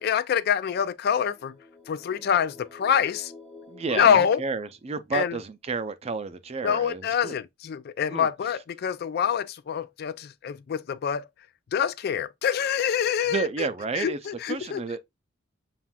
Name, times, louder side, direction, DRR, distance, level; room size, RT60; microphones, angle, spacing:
voice 1, 0.0-1.5 1.9-3.3 3.9-4.4 5.1-5.4 6.6-11.3 11.7-13.7 14.0-14.8, left 8 dB, 55° left, 0.3 m, -25 dB
sound 1, 1.1-5.0, left 3 dB, ahead, 1.0 m, -50 dB
voice 2, 3.7-7.4 8.1-8.3 13.3-14.2 14.5-15.0, right 4 dB, 35° right, 0.4 m, -31 dB
7.1 x 2.4 x 2.2 m
head